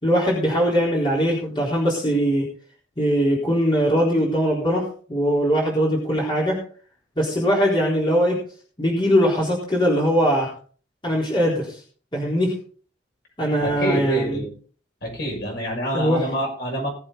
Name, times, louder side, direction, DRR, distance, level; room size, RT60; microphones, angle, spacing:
voice 1, 0.0-2.5 3.0-4.8 5.1-6.6 7.2-8.4 8.8-10.5 11.0-11.8 12.1-12.5 13.4-14.4 15.9-16.2, equal, 25° left, -4 dB, 4.1 m, -21 dB
voice 2, 13.6-14.5 15.0-16.9, right 1 dB, 60° left, -1 dB, 6.5 m, -26 dB
20.0 x 7.8 x 4.0 m, 0.43 s
head